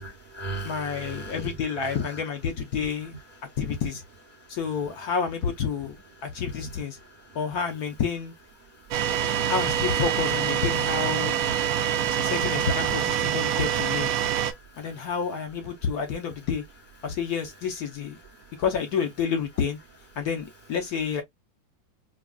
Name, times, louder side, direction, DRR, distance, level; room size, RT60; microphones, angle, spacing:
voice 1, 0.0-2.0 6.6-7.4 8.8-9.5 12.2-12.3 14.2-15.1 18.4-18.6, right 2 dB, 45° right, 0.6 m, -40 dB
voice 2, 0.6-3.1 3.6-4.0 4.5-6.0 6.2-7.0 7.3-8.3 9.5-11.4 12.1-14.1 14.8-16.6 17.0-18.2 18.6-19.8 20.2-21.2, left 6 dB, 65° left, 1.1 m, -29 dB
sound 1, 8.9-14.5, right 9 dB, 80° right, 0.8 m, -25 dB
4.8 x 2.2 x 2.3 m
omnidirectional pair, 2.1 m